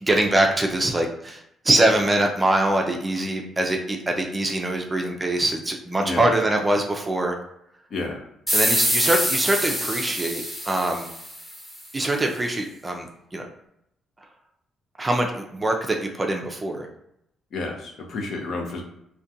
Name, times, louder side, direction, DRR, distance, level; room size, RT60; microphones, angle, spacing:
voice 1, 0.0-7.4 8.5-11.1 11.9-13.5 15.0-16.9, right 1 dB, 20° right, 2 dB, 0.4 m, -23 dB
voice 2, 7.9-8.2 17.5-18.8, left 3 dB, 65° left, 2 dB, 0.6 m, -30 dB
sound 1, 8.5-11.8, equal, 5° left, 0.9 m, -25 dB
2.4 x 2.1 x 2.6 m, 0.76 s
cardioid pair, 90°, 0 cm